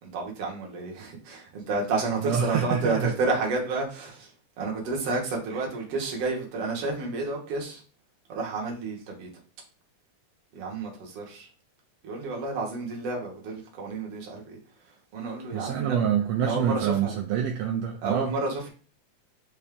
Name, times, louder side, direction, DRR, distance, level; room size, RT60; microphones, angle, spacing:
voice 1, 0.0-4.3 4.6-7.8 8.3-9.3 10.5-11.5 12.0-14.6 15.1-16.0 16.4-17.2 18.0-18.7, right 3 dB, 60° right, -1 dB, 1.9 m, -30 dB
voice 2, 2.2-3.1 15.5-18.3, right 8 dB, 75° right, 1 dB, 1.6 m, -26 dB
5.7 x 2.7 x 3.4 m, 0.38 s
omnidirectional pair, 3.5 m